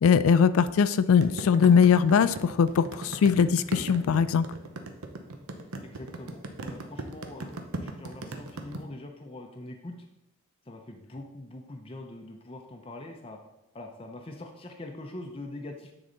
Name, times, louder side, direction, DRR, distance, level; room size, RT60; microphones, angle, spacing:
voice 1, 0.0-4.5, left 6 dB, 75° left, 14 dB, 0.3 m, -21 dB
sound 1, 1.2-8.8, right 2 dB, 85° right, 0.8 m, -37 dB
voice 2, 5.8-9.9 10.7-13.4 13.7-15.9, left 1 dB, 25° left, 2 dB, 0.6 m, -43 dB
9.5 x 4.0 x 3.9 m, 0.90 s
head